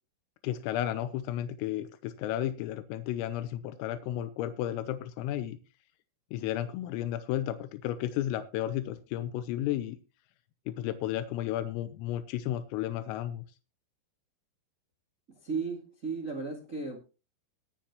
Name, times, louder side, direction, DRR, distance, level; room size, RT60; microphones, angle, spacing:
voice 1, 0.4-5.6 6.3-10.0 10.7-13.4, left 12 dB, 90° left, 11 dB, 3.5 m, -33 dB
voice 2, 15.3-17.0, right 4 dB, 60° right, 0 dB, 0.8 m, -35 dB
20.5 x 7.5 x 3.0 m, 0.31 s
omnidirectional pair, 5.8 m